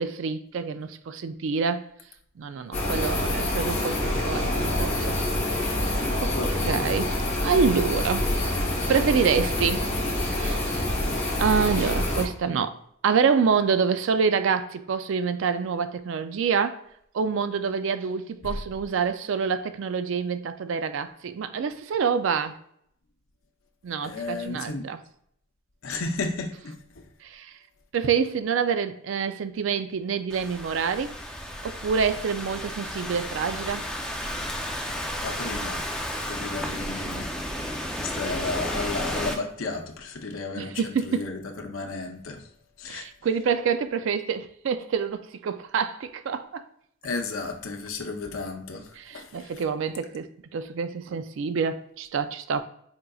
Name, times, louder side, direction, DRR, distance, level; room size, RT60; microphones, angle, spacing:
voice 1, 0.0-1.8 2.4-5.1 6.2-6.3 6.7-7.1 7.4-8.3 8.9-9.8 10.3-10.7 11.4-12.7 13.0-16.8 17.1-22.5 23.8-25.0 27.2-27.5 27.9-31.1 31.6-33.8 40.6-41.2 42.9-46.6 49.0-50.3 50.5-52.6, right 6 dB, 65° right, 0.3 m, -26 dB
sound 1, 2.7-12.2, left 1 dB, 30° left, 1.0 m, -26 dB
voice 2, 6.3-6.9 18.4-18.6 24.0-24.9 25.8-27.1 35.2-37.3 38.0-42.5 42.8-43.1 47.0-49.6, left 3 dB, 70° left, 0.6 m, -33 dB
Thunderstorm / Rain, 30.3-39.3, equal, 5° left, 0.4 m, -33 dB
4.4 x 3.7 x 2.3 m
head